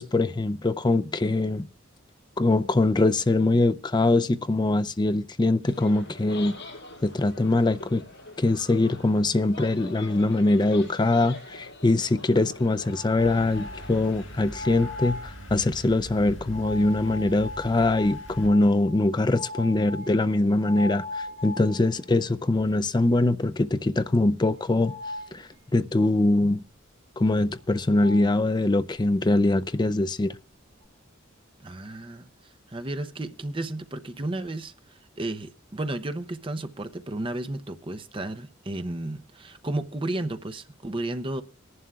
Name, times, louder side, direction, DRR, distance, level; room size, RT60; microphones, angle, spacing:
voice 1, 0.0-1.7 2.4-6.6 7.0-8.0 8.4-24.9 25.3-26.6 27.2-30.4, left 2 dB, 20° left, 0.5 m, -23 dB
sound 1, 5.6-14.6, left 2 dB, 60° left, 7.2 m, -44 dB
sound 2, 12.8-13.9 14.4-15.3 16.5-22.1 22.6-22.7 23.1-23.2 24.8-25.3 27.6-27.7 27.9-28.3, left 2 dB, 75° right, 1.7 m, -39 dB
sound 3, 13.2-18.5, equal, 80° left, 3.9 m, -41 dB
voice 2, 31.6-32.3 32.7-41.4, right 1 dB, 25° right, 0.7 m, -33 dB
22.5 x 11.0 x 2.3 m
head